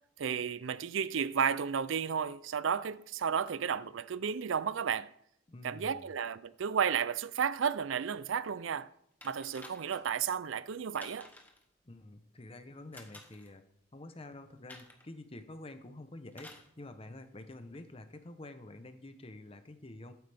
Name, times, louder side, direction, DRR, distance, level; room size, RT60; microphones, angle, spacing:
voice 1, 0.2-5.1 5.6-8.9 9.2-11.3, right 7 dB, 75° right, 0.4 m, -33 dB
voice 2, 5.5-6.1 11.8-13.6 13.9-20.1, left 2 dB, 30° left, 0.8 m, -48 dB
sound 1, 9.2-10.2 10.9-11.6 12.9-13.5 14.7-15.1 16.3-16.7 17.7-17.8, left 2 dB, 10° left, 1.1 m, -52 dB
14.0 x 7.9 x 3.4 m
head